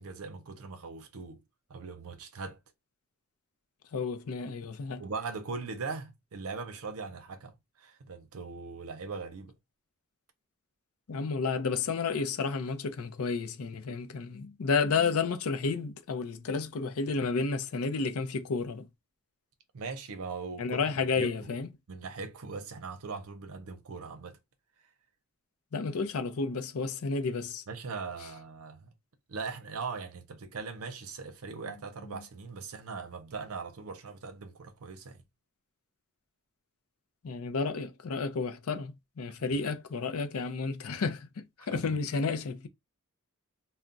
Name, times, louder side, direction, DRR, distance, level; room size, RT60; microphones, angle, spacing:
voice 1, 0.0-1.4 1.7-2.6 5.0-9.6 19.7-20.8 21.1-21.5 21.9-24.4 27.7-28.9 29.3-35.2 39.4-39.6 41.6-42.0, right 4 dB, 70° right, 0.6 m, -40 dB
voice 2, 3.9-5.0 11.1-18.9 20.6-21.7 25.7-27.6 32.0-32.2 37.2-42.7, left 4 dB, 70° left, 0.5 m, -31 dB
2.3 x 2.1 x 3.8 m
head